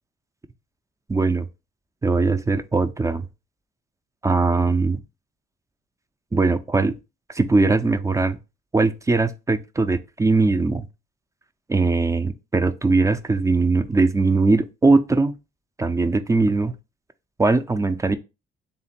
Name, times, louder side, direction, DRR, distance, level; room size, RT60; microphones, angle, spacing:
voice 1, 1.1-1.5 2.0-3.3 4.2-5.0 6.3-7.0 7.3-8.4 8.7-10.9 11.7-15.3 15.8-16.7 17.4-18.2, right 3 dB, 15° right, 0.4 m, -20 dB
3.4 x 2.9 x 4.2 m
cardioid pair, 90°, 20 cm